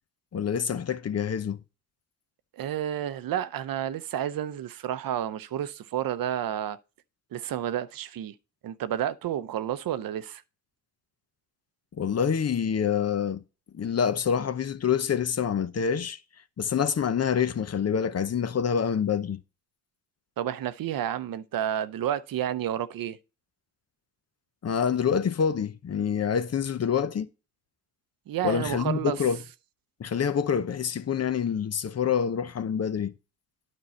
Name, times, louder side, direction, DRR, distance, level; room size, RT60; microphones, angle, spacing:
voice 1, 0.3-1.6 12.0-13.4 13.7-16.2 16.6-19.4 24.6-27.3 28.4-29.4 30.0-33.1, left 7 dB, 45° left, 0.7 m, -26 dB
voice 2, 2.5-6.8 7.3-8.3 8.6-10.4 20.4-23.2 28.3-29.2, right 10 dB, 70° right, 0.7 m, -30 dB
9.5 x 5.3 x 4.2 m
supercardioid pair, 55°, 36 cm